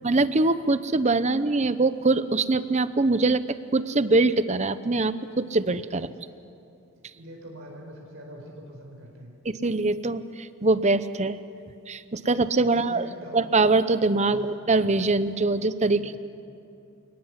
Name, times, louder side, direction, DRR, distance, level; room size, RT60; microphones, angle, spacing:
voice 1, 0.0-3.4 3.7-6.1 9.4-11.4 11.9-13.1 13.3-16.2, right 3 dB, 30° right, 13 dB, 0.8 m, -23 dB
voice 2, 7.1-9.4 12.7-13.4 14.3-14.6 15.9-16.2, equal, 65° right, 0 dB, 4.4 m, -44 dB
28.0 x 18.5 x 9.8 m, 2.5 s
head